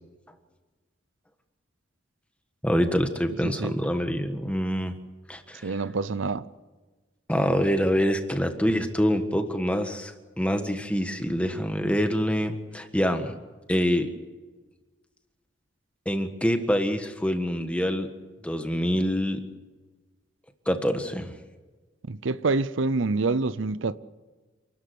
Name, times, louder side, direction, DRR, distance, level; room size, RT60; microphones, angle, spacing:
voice 1, 2.6-4.9 5.3-5.8 7.3-13.3 13.7-14.1 16.0-18.1 18.4-19.4 20.6-21.3, equal, 5° left, 1.5 m, -25 dB
voice 2, 3.4-3.7 5.6-6.5 22.1-23.9, right 3 dB, 80° right, 0.7 m, -26 dB
28.5 x 13.5 x 9.5 m
head